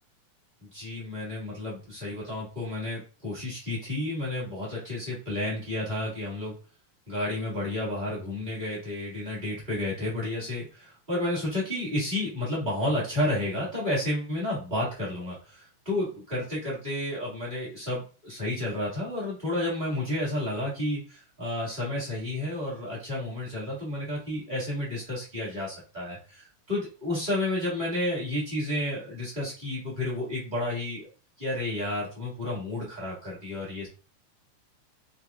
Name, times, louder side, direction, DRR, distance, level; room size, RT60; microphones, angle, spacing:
voice 1, 0.7-6.5 7.1-31.1 31.4-33.9, left 1 dB, 25° right, -7 dB, 1.2 m, -31 dB
5.2 x 3.3 x 2.3 m, 0.35 s
omnidirectional pair, 3.6 m